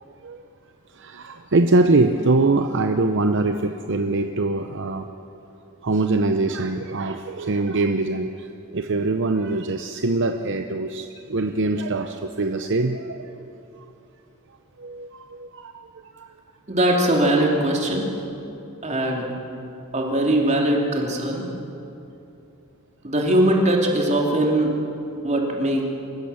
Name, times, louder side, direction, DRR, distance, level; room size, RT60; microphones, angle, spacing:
voice 1, 0.9-5.1 5.8-8.5 8.7-13.3 14.8-16.3, right 2 dB, 55° right, 7 dB, 0.8 m, -23 dB
voice 2, 16.7-18.1 18.8-19.3 19.9-21.4 23.0-24.7 25.2-25.9, right 1 dB, 30° right, 0 dB, 3.0 m, -20 dB
27.0 x 15.5 x 7.1 m, 2.8 s
head